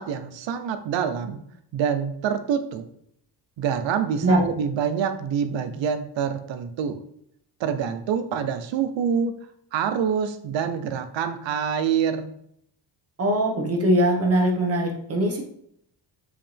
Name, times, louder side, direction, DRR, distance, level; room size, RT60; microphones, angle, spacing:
voice 1, 0.0-1.4 1.7-2.8 3.6-7.0 7.6-9.4 9.7-12.3, right 7 dB, 85° right, 10 dB, 0.9 m, -26 dB
voice 2, 13.2-15.4, right 1 dB, 35° right, 0 dB, 1.5 m, -21 dB
7.6 x 4.9 x 3.5 m, 0.72 s
cardioid pair, 145°, 44 cm